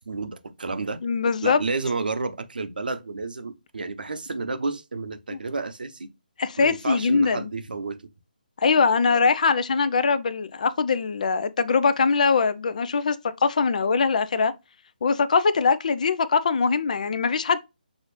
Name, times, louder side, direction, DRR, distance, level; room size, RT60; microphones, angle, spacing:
voice 1, 0.0-1.0 1.4-6.1 6.6-8.0, right 3 dB, 70° right, 0.7 m, -31 dB
voice 2, 1.0-1.6 5.3-5.4 6.4-7.5 8.6-13.2 13.4-14.5 15.0-17.6, left 5 dB, 55° left, 0.4 m, -22 dB
6.1 x 2.5 x 3.1 m
figure-of-eight pair, 150°, 5 cm